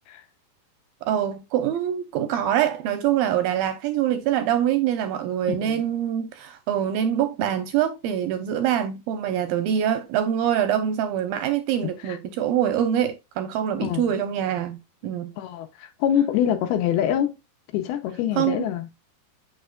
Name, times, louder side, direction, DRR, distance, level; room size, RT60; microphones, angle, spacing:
voice 1, 1.0-15.3 18.4-18.6, right 10 dB, 80° right, 2.2 m, -24 dB
voice 2, 5.5-5.8 12.0-12.2 13.8-14.1 15.4-17.3 17.7-18.9, left 10 dB, 80° left, 2.6 m, -25 dB
6.7 x 6.4 x 2.3 m
omnidirectional pair, 4.7 m